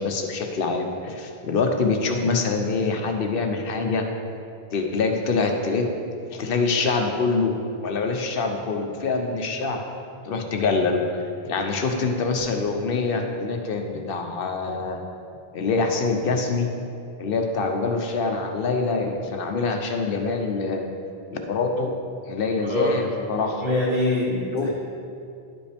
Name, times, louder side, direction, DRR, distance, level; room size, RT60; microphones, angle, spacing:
voice 1, 0.0-4.1 4.7-5.9 6.3-7.6 7.8-9.8 10.2-15.0 15.5-16.7 17.2-20.8 21.3-22.0 22.3-23.6 24.5-24.7, left 4 dB, 65° left, 4 dB, 0.9 m, -25 dB
voice 2, 22.6-23.1 23.4-24.7, left 1 dB, 25° left, -6 dB, 1.2 m, -24 dB
10.0 x 5.2 x 3.4 m, 2.5 s
omnidirectional pair, 1.0 m